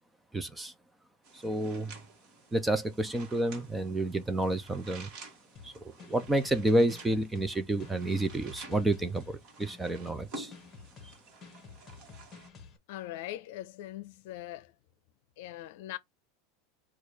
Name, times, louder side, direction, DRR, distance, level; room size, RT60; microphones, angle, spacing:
voice 1, 0.3-0.7 1.3-1.9 2.5-5.1 5.6-10.5, right 1 dB, 5° right, 0.4 m, -30 dB
sound 1, 1.2-12.5, right 2 dB, 40° right, 1.5 m, -51 dB
sound 2, 5.5-12.8, left 5 dB, 20° left, 1.1 m, -51 dB
voice 2, 12.9-14.7 15.4-16.0, left 14 dB, 60° left, 0.6 m, -41 dB
4.6 x 2.4 x 4.7 m
supercardioid pair, 165°, 0 cm